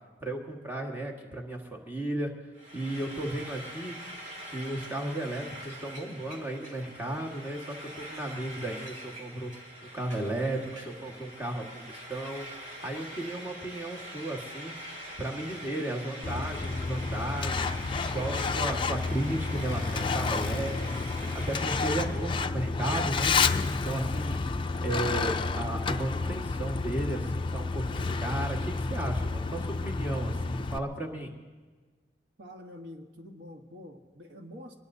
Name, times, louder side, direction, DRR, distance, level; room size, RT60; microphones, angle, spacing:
voice 1, 0.2-2.3 2.7-4.0 4.4-9.5 9.8-14.7 15.2-20.8 21.3-23.3 23.7-24.4 24.8-31.3, right 1 dB, 10° right, -1 dB, 1.6 m, -34 dB
Frying (food), 2.5-22.3, equal, 45° right, 2.4 m, -44 dB
Truck, 16.2-30.8, left 4 dB, 25° left, 0.4 m, -30 dB
voice 2, 32.4-34.8, left 1 dB, 70° right, 3 dB, 1.3 m, -46 dB
24.5 x 20.0 x 2.7 m, 1.4 s
head